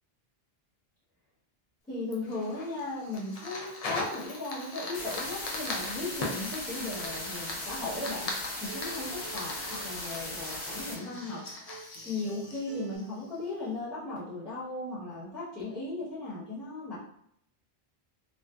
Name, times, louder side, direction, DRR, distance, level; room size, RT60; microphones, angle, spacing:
voice 1, 1.9-8.3 8.6-11.4 12.0-17.0, left 2 dB, ahead, -11 dB, 0.8 m, -37 dB
Fire, 2.1-13.5, left 2 dB, 50° left, 0.5 m, -40 dB
sound 1, 4.9-10.9, left 1 dB, 85° left, 0.9 m, -39 dB
Acoustic guitar, 5.0-13.0, right 3 dB, 55° right, 0.9 m, -50 dB
2.6 x 2.2 x 2.3 m, 0.70 s
omnidirectional pair, 1.0 m